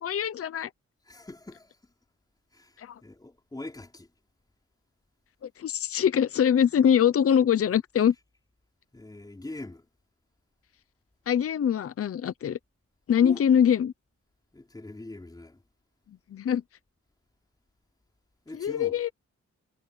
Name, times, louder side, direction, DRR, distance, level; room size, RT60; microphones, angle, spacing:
voice 1, 0.0-0.7 2.8-3.0 5.4-8.1 11.3-12.6 13.1-13.9 16.3-16.6 18.6-19.1, left 8 dB, 50° left, 0.7 m, -23 dB
voice 2, 1.1-1.8 2.5-4.1 8.9-9.9 13.2-13.4 14.5-15.6 18.5-19.0, left 2 dB, 15° left, 4.5 m, -42 dB
wide cardioid pair, 165°, 29 cm